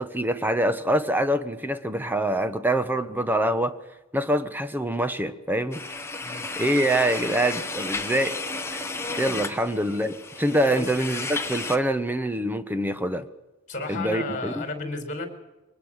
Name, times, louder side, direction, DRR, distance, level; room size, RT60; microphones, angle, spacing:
voice 1, 0.0-3.8 4.1-5.8 6.6-8.3 8.7-8.8 9.2-13.3 13.9-14.6, right 1 dB, 10° right, 10 dB, 1.1 m, -25 dB
sound 1, 5.7-11.8, left 3 dB, 10° left, 1.3 m, -33 dB
voice 2, 13.7-15.3, left 2 dB, 35° left, 6 dB, 4.7 m, -33 dB
23.5 x 19.5 x 6.6 m, 1.0 s
head